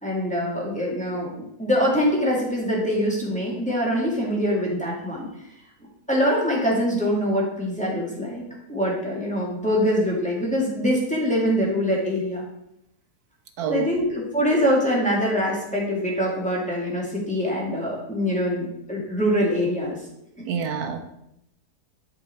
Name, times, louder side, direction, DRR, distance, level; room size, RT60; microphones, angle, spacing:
voice 1, 0.0-5.3 6.1-8.4 8.7-12.4 13.7-20.0 20.4-20.5, equal, 5° left, -4 dB, 2.5 m, -24 dB
voice 2, 13.6-13.9 20.4-21.0, right 6 dB, 70° right, 7 dB, 1.4 m, -27 dB
11.0 x 5.3 x 4.5 m, 0.80 s
omnidirectional pair, 1.7 m